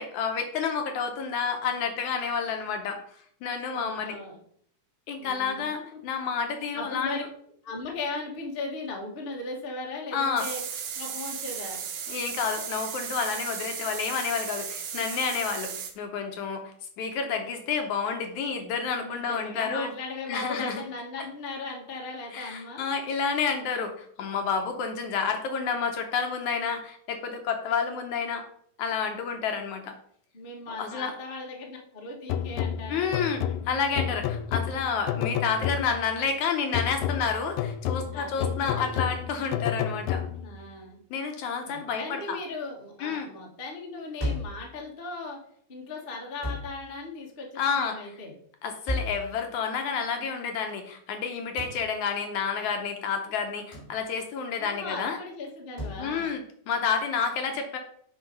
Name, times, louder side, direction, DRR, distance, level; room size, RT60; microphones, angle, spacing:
voice 1, 0.0-4.2 5.1-7.3 10.1-10.5 12.1-19.9 20.3-20.8 22.3-28.4 28.8-29.9 30.7-31.1 32.9-40.2 41.1-42.4 43.0-43.3 47.6-48.0 48.6-55.2 56.0-57.8, left 6 dB, 70° left, 5 dB, 1.9 m, -30 dB
voice 2, 3.7-4.4 5.2-5.8 6.7-7.2 7.6-10.6 10.9-11.8 19.0-22.8 30.3-33.2 38.1-39.0 40.4-41.0 41.7-45.4 45.7-48.3 54.6-56.3, left 3 dB, 55° left, 0 dB, 0.6 m, -38 dB
sound 1, 10.4-15.9, right 7 dB, 65° right, 1.8 m, -35 dB
sound 2, 32.3-36.2 36.7-40.6, left 9 dB, 90° left, 2.4 m, -31 dB
sound 3, 44.2-44.6 46.4-46.7 48.9-49.2 51.6-51.8 53.7-54.0 55.8-56.0, left 1 dB, 10° left, 3.2 m, -32 dB
8.5 x 5.3 x 5.3 m, 0.64 s
omnidirectional pair, 4.1 m